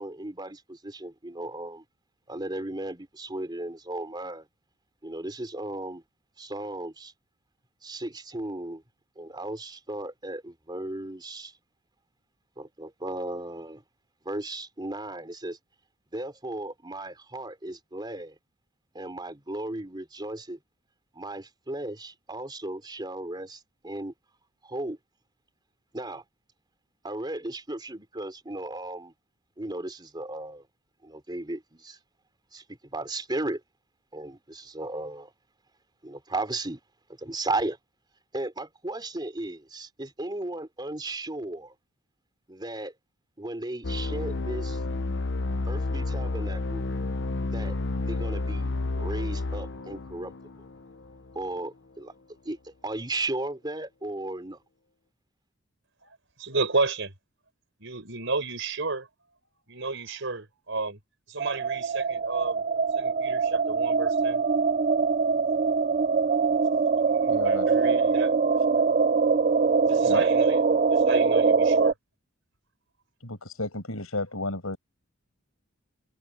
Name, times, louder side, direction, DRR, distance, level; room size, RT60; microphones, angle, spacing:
voice 1, 0.0-1.8 2.3-4.5 5.0-6.0 6.4-7.1 7.8-8.8 9.2-11.5 12.6-13.8 14.2-15.6 16.1-18.3 18.9-20.6 21.1-24.1 24.6-25.0 25.9-26.2 27.0-29.1 29.6-30.6 31.0-32.0 32.5-32.6 32.9-33.6 34.1-35.3 36.0-36.8 37.2-37.8 38.3-41.7 42.5-42.9 43.4-44.8 45.7-46.8 47.5-47.8 48.0-48.7 49.0-50.3 51.3-52.1 52.4-54.6, right 2 dB, 20° right, 3.3 m, -35 dB
sound 1, 43.8-51.4, left 2 dB, 55° left, 0.8 m, -30 dB
voice 2, 56.0-57.1 57.8-59.1 59.7-61.0 61.3-62.6 62.9-64.4 67.2-68.3 69.9-70.6 70.9-71.9, right 3 dB, 60° right, 5.5 m, -32 dB
sound 2, 61.4-71.9, right 5 dB, 35° right, 0.4 m, -23 dB
voice 3, 67.3-67.7 69.9-70.2 73.2-74.8, left 2 dB, 85° left, 7.4 m, -33 dB
head